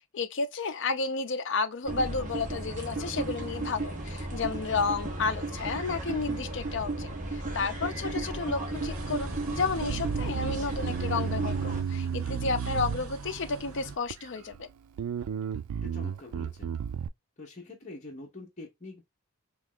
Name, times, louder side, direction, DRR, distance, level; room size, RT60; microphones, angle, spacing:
voice 1, 0.1-14.7, left 4 dB, 55° left, 0.6 m, -32 dB
sound 1, 1.8-11.8, right 2 dB, 35° right, 1.2 m, -35 dB
sound 2, 8.7-14.0, right 4 dB, 75° right, 0.8 m, -42 dB
Bass guitar, 9.9-13.5 14.1-14.6 15.0-17.1, right 7 dB, 90° right, 0.3 m, -33 dB
voice 2, 15.7-16.8 17.4-19.0, left 2 dB, 35° left, 1.1 m, -45 dB
3.2 x 2.9 x 3.6 m
head